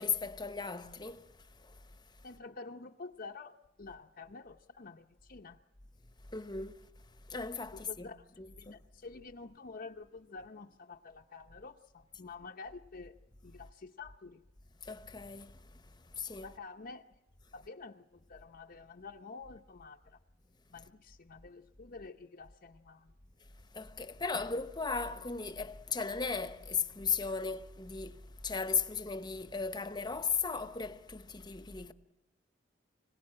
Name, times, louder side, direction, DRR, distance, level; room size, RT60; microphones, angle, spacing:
voice 1, 0.0-1.3 1.6-1.8 6.3-6.8 7.3-8.1 8.4-8.8 14.8-16.5 23.7-31.9, left 5 dB, 25° left, 0.9 m, -36 dB
voice 2, 2.2-5.6 7.7-13.2 13.4-14.4 16.4-17.0 17.5-20.2 20.7-23.1, left 4 dB, 50° left, 0.7 m, -49 dB
25.5 x 17.0 x 8.6 m
head